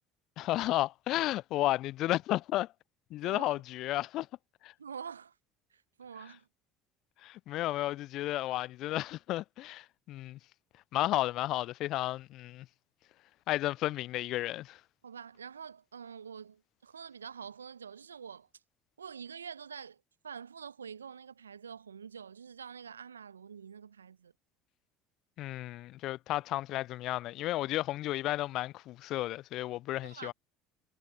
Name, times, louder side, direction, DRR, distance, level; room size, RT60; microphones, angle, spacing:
voice 1, 0.4-2.7 3.1-4.3 4.6-4.7 7.2-10.4 10.9-12.7 13.5-14.8 25.4-30.3, left 16 dB, 55° left, 0.6 m, -33 dB
voice 2, 3.2-3.5 4.8-5.3 5.7-6.5 15.0-18.5 19.0-24.3 30.0-30.3, right 7 dB, 85° right, 1.1 m, -46 dB
figure-of-eight pair, 60°, 0 cm